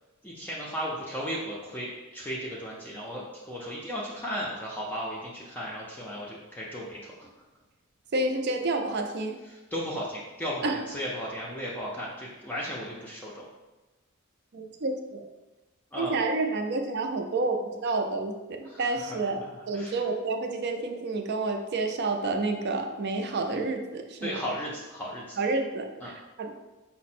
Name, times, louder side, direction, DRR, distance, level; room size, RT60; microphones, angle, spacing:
voice 1, 0.2-7.3 9.5-13.4 15.9-16.2 18.6-20.0 24.2-25.4 26.0-26.1, equal, 10° left, -5 dB, 0.5 m, -35 dB
voice 2, 8.1-9.4 10.6-10.8 14.5-15.3 16.0-19.4 19.7-24.4 25.4-26.5, right 3 dB, 50° right, 4 dB, 0.4 m, -29 dB
5.0 x 2.1 x 4.2 m, 1.1 s
head